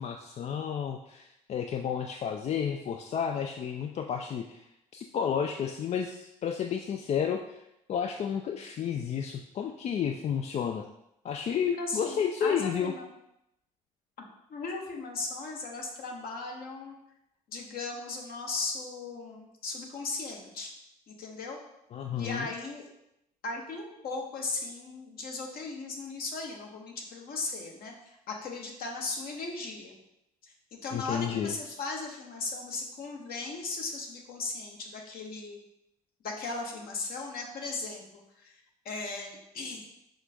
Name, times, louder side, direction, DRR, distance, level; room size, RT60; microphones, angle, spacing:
voice 1, 0.0-4.7 4.9-7.6 7.9-10.8 11.2-12.9 21.9-22.5 30.9-31.5, left 7 dB, 35° left, 4 dB, 0.3 m, -31 dB
voice 2, 11.7-13.1 14.5-16.9 17.5-20.7 21.1-21.6 22.1-22.9 23.4-27.9 28.3-30.0 30.4-35.6 36.2-38.5 38.8-39.9, left 3 dB, 55° left, 1 dB, 1.0 m, -37 dB
5.4 x 2.5 x 3.4 m, 0.83 s
hypercardioid pair, 55°, 19 cm